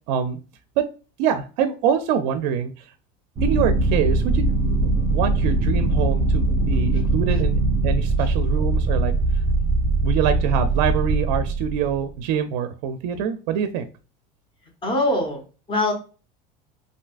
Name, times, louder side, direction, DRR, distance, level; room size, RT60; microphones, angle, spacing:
voice 1, 0.1-0.4 0.8-0.9 1.2-2.9 3.4-4.5 4.8-9.1 10.0-13.9, right 8 dB, 70° right, 9 dB, 0.4 m, -25 dB
sound 1, 3.4-12.1, right 2 dB, 25° right, 1.1 m, -21 dB
voice 2, 14.8-15.9, left 1 dB, 25° left, 2 dB, 1.0 m, -23 dB
3.2 x 2.7 x 2.4 m, 0.35 s
supercardioid pair, 125°, 21 cm